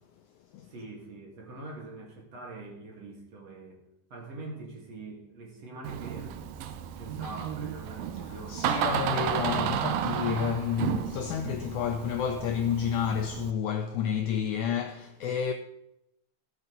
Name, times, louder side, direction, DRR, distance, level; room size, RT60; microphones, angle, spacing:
voice 1, 0.7-3.8 4.1-6.5 7.0-8.6, right 2 dB, 50° right, 2.9 m, -43 dB
Door, 5.8-13.5, right 9 dB, 80° right, 2.3 m, -32 dB
voice 2, 8.5-15.5, left 8 dB, 85° left, 1.7 m, -30 dB
14.5 x 8.0 x 4.0 m
omnidirectional pair, 4.2 m